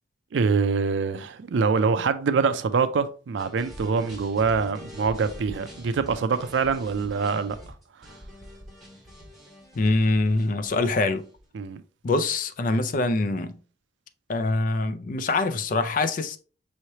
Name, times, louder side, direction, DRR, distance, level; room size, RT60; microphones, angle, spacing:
voice 1, 0.3-7.6 11.5-11.8, right 5 dB, 85° right, 0.4 m, -24 dB
sound 1, 3.4-11.4, equal, ahead, 1.8 m, -45 dB
voice 2, 9.8-11.2 12.0-13.6 14.3-16.4, left 2 dB, 45° left, 0.4 m, -24 dB
5.6 x 3.1 x 2.8 m
head